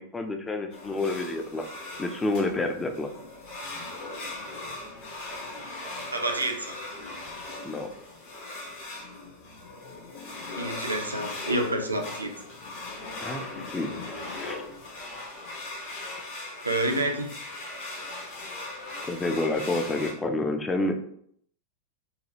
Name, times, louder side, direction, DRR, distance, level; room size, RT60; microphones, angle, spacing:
voice 1, 0.0-1.6 2.0-3.1 7.6-7.9 13.2-14.0 14.4-14.6 19.0-21.0, left 2 dB, 15° left, 6 dB, 0.3 m, -29 dB
sound 1, 0.7-20.1, left 2 dB, 50° left, 0.8 m, -39 dB
voice 2, 6.1-6.7 10.6-12.3 16.6-17.3, right 1 dB, 80° right, 3 dB, 0.4 m, -28 dB
2.8 x 2.2 x 2.9 m, 0.66 s
figure-of-eight pair, 90°, 0 cm